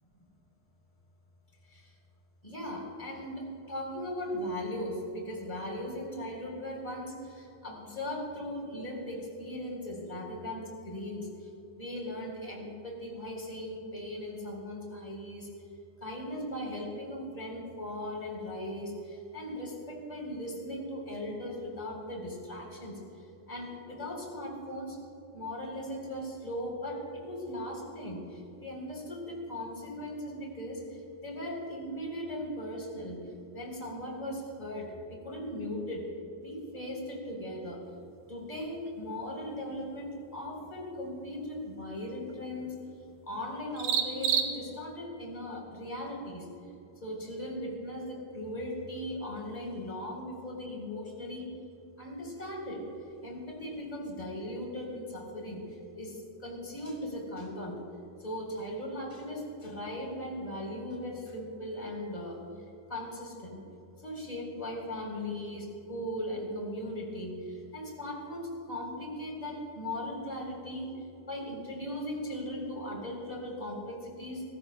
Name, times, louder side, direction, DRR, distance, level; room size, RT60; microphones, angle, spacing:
voice 1, 2.4-11.3 11.7-15.5 16.0-23.0 23.5-25.0 25.3-28.2 28.6-30.8 31.2-33.2 33.5-34.9 35.2-36.1 36.4-37.8 38.3-42.8 43.3-46.5 47.0-51.5 52.0-52.8 53.2-55.7 56.0-57.8 58.2-62.4 62.9-63.6 64.0-70.9 71.3-74.4, left 1 dB, 10° left, -1 dB, 3.6 m, -38 dB
sound 1, 37.8-45.1, right 7 dB, 65° right, 2.7 m, -37 dB
25.5 x 18.5 x 2.3 m, 2.7 s
omnidirectional pair, 3.8 m